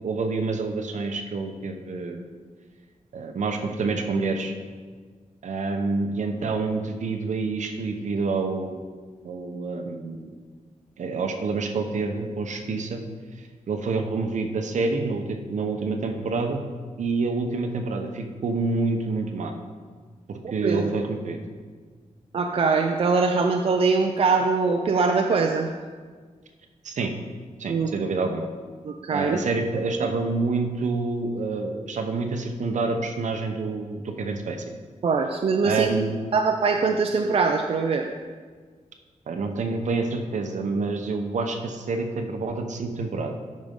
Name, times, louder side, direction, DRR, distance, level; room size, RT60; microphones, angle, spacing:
voice 1, 0.0-2.2 3.1-4.5 5.4-8.8 9.2-10.3 11.0-13.0 13.7-16.6 17.0-19.5 20.3-21.4 26.8-27.1 27.6-28.5 29.1-34.7 35.6-36.1 39.3-43.3, right 3 dB, 70° right, 5 dB, 0.8 m, -27 dB
voice 2, 22.3-25.7 27.7-27.9 28.8-29.4 35.0-35.9 36.3-38.1, right 4 dB, 50° right, 3 dB, 0.5 m, -22 dB
13.0 x 5.2 x 3.7 m, 1.5 s
wide cardioid pair, 170°, 13 cm